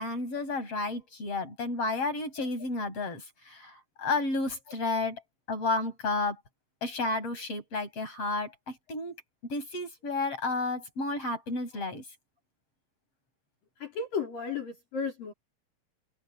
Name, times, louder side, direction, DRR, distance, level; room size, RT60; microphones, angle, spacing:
voice 1, 0.0-5.2 5.5-6.4 6.8-9.2 9.4-12.0, left 3 dB, 35° left, 9.0 m, -32 dB
voice 2, 13.8-15.3, left 5 dB, 60° left, 6.7 m, -34 dB
omnidirectional pair, 4.5 m